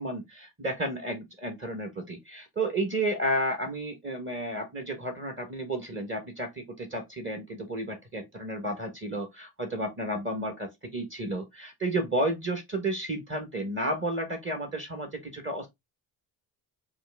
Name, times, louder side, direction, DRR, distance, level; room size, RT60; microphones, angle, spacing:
voice 1, 0.0-15.7, right 1 dB, 25° right, 1.2 m, -32 dB
4.3 x 2.5 x 3.4 m
supercardioid pair, 65°, 48 cm